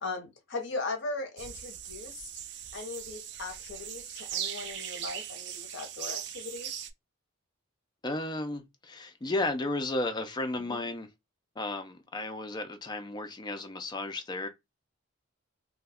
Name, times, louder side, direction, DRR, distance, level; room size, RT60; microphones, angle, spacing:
voice 1, 0.0-2.2 2.7-6.7 10.7-10.8, left 3 dB, 55° left, 0.7 m, -38 dB
sound 1, 1.4-6.9, right 9 dB, 55° right, 0.3 m, -39 dB
voice 2, 8.0-11.1 11.6-14.5, left 2 dB, 20° left, 0.3 m, -33 dB
2.3 x 2.1 x 3.4 m
head